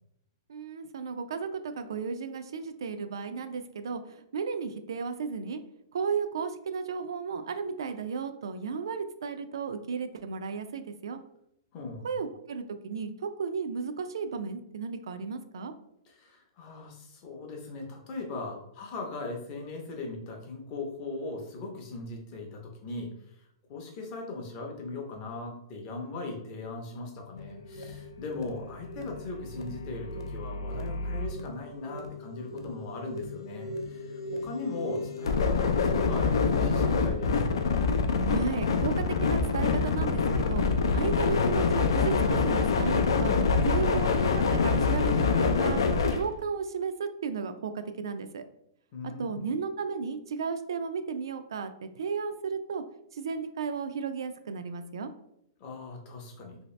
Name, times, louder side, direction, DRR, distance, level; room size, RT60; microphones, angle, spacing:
voice 1, 0.5-5.6 5.9-11.2 12.0-15.7 38.3-43.3 43.6-48.4 49.0-52.8 53.1-55.1, right 5 dB, 75° right, 9 dB, 0.3 m, -34 dB
voice 2, 11.7-12.1 16.1-23.4 23.7-35.7 36.0-37.4 48.9-49.4 55.6-56.6, left 3 dB, 25° left, 1 dB, 0.5 m, -39 dB
sound 1, 27.4-46.3, left 4 dB, 85° left, 0.4 m, -27 dB
3.1 x 2.7 x 3.1 m, 0.75 s
hypercardioid pair, 180°, 2 cm